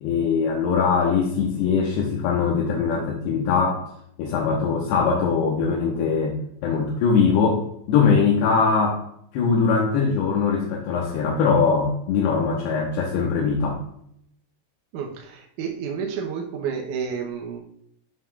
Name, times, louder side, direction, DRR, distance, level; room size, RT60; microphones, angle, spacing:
voice 1, 0.0-3.9 4.2-6.4 6.6-9.0 9.3-13.8, left 5 dB, 85° left, -2 dB, 3.2 m, -21 dB
voice 2, 14.9-17.6, right 6 dB, 75° right, 1 dB, 1.9 m, -30 dB
12.5 x 6.0 x 2.4 m, 0.71 s
omnidirectional pair, 4.7 m